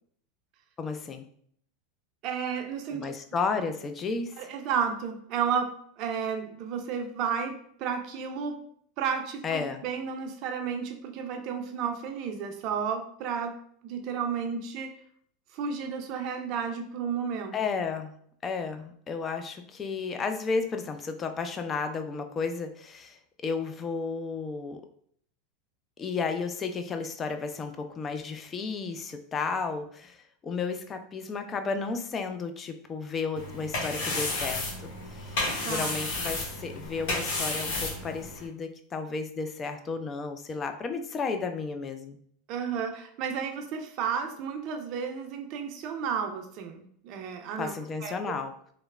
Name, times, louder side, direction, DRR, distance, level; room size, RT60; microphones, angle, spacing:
voice 1, 0.8-1.3 2.9-4.4 9.4-9.8 17.5-18.1 18.4-24.8 26.0-30.2 30.4-34.9 35.7-42.2 47.6-48.5, left 4 dB, 30° left, 7 dB, 0.3 m, -33 dB
voice 2, 2.2-3.0 4.4-8.6 9.0-15.0 15.5-17.6 35.6-35.9 42.5-47.7 48.0-48.3, right 7 dB, 55° right, 5 dB, 0.4 m, -32 dB
sound 1, 33.4-38.5, left 2 dB, 65° left, 0.8 m, -32 dB
3.0 x 2.0 x 2.3 m, 0.62 s
hypercardioid pair, 95°, 0 cm